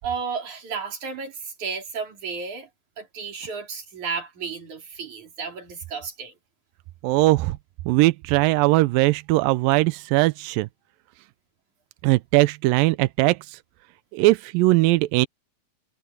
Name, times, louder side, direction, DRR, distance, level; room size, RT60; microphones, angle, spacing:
voice 1, 0.0-2.7 3.0-6.3, right 5 dB, 50° right, 5.4 m, -33 dB
voice 2, 7.0-7.6 7.9-10.7 12.0-13.6 14.1-15.3, right 20 dB, 80° right, 2.1 m, -20 dB
omnidirectional pair, 4.5 m